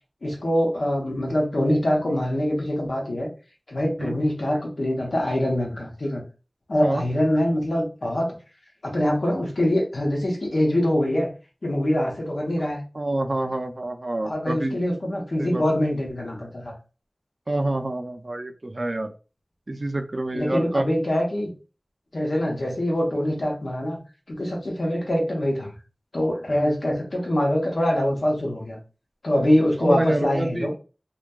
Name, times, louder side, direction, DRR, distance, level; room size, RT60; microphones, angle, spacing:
voice 1, 0.2-3.3 3.7-6.2 6.7-8.4 8.8-11.3 11.6-12.8 14.2-16.7 20.3-21.5 22.1-24.0 24.3-25.7 26.1-28.8 29.2-30.7, left 1 dB, 80° left, -1 dB, 0.8 m, -24 dB
voice 2, 12.9-14.8 15.4-15.6 17.5-19.1 19.7-20.9 24.9-25.0 26.5-26.8 29.8-30.7, right 2 dB, 55° right, 6 dB, 0.3 m, -27 dB
2.6 x 2.2 x 2.2 m, 0.34 s
wide cardioid pair, 40°, 0 cm